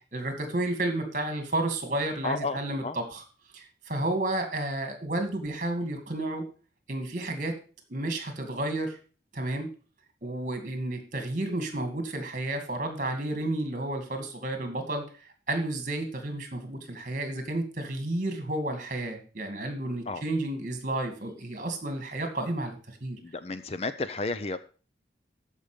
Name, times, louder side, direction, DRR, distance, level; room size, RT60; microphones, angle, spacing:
voice 1, 0.1-3.2 3.5-6.4 6.9-7.5 7.9-9.0 9.3-9.7 10.2-15.1 15.5-23.2, right 1 dB, 45° right, 5 dB, 2.3 m, -31 dB
voice 2, 2.2-3.0 20.1-20.2 23.2-24.6, left 3 dB, 35° left, 12 dB, 0.5 m, -32 dB
13.5 x 5.5 x 5.1 m, 0.37 s
head